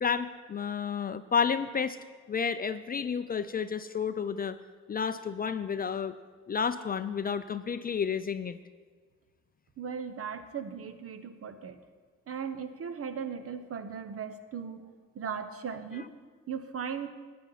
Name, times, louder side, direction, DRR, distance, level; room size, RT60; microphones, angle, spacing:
voice 1, 0.0-2.0 2.3-4.6 4.9-6.1 6.5-8.6 16.0-16.1, left 6 dB, 30° left, 11 dB, 0.4 m, -31 dB
voice 2, 9.8-11.8 12.3-14.9 15.1-16.1 16.5-17.1, right 6 dB, 50° right, 10 dB, 0.9 m, -37 dB
13.0 x 9.5 x 4.1 m, 1.5 s
cardioid pair, 90°, 30 cm